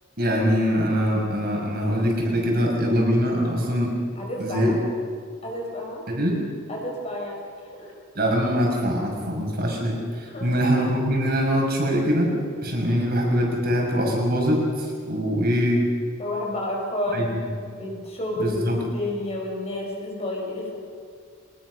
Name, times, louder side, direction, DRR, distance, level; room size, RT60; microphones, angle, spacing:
voice 1, 0.2-3.9 4.4-4.7 6.1-6.4 8.1-12.3 12.6-15.9 17.1-17.4 18.4-18.8, equal, 45° right, -1 dB, 6.2 m, -23 dB
voice 2, 4.2-4.7 5.4-6.0 6.7-7.9 10.3-10.5 16.2-20.8, left 1 dB, 30° left, -1 dB, 5.6 m, -30 dB
25.5 x 20.5 x 6.4 m, 2.1 s
head